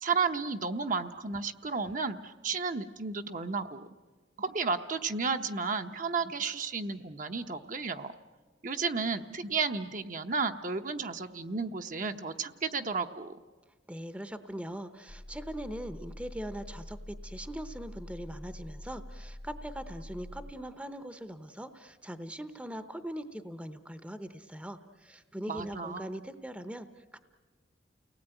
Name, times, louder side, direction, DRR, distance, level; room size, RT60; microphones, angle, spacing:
voice 1, 0.0-3.9 4.4-8.1 8.6-13.4 25.5-26.0, right 4 dB, 45° right, 6 dB, 0.9 m, -33 dB
voice 2, 13.9-27.2, equal, 5° right, 11 dB, 0.8 m, -41 dB
sound 1, 15.1-20.5, left 1 dB, 30° left, 0.9 m, -45 dB
29.5 x 18.5 x 9.0 m, 1.4 s
head